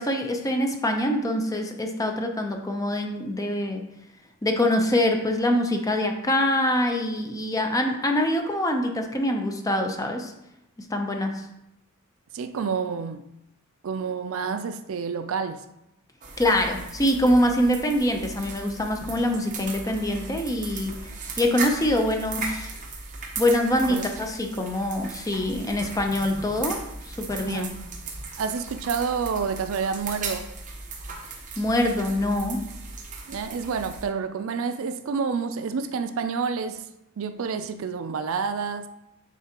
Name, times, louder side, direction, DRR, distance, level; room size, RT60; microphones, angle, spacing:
voice 1, 0.0-3.8 4.4-10.3 10.9-11.5 16.4-21.0 21.4-22.7 23.4-26.8 27.1-27.7 31.6-32.6, left 1 dB, 15° left, 4 dB, 0.6 m, -24 dB
voice 2, 12.3-13.2 13.8-15.6 23.9-24.0 27.5-27.7 28.4-30.5 33.3-36.8 37.2-38.9, right 5 dB, 65° right, 10 dB, 0.4 m, -29 dB
sound 1, 16.2-34.0, right 3 dB, 35° right, 0.9 m, -37 dB
9.1 x 3.8 x 2.9 m, 0.86 s
head